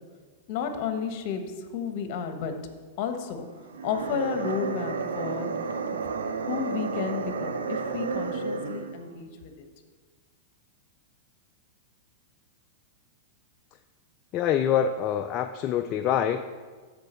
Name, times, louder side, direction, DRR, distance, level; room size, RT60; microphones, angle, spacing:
voice 1, 0.5-2.5 3.0-3.5 3.8-5.5 6.1-9.6, left 7 dB, 50° left, 7 dB, 1.0 m, -32 dB
sound 1, 3.7-9.0, right 5 dB, 90° right, 0.6 m, -31 dB
voice 2, 14.3-16.4, left 9 dB, 35° left, 7 dB, 0.3 m, -25 dB
12.0 x 4.6 x 4.3 m, 1.4 s
hypercardioid pair, 125°, 0 cm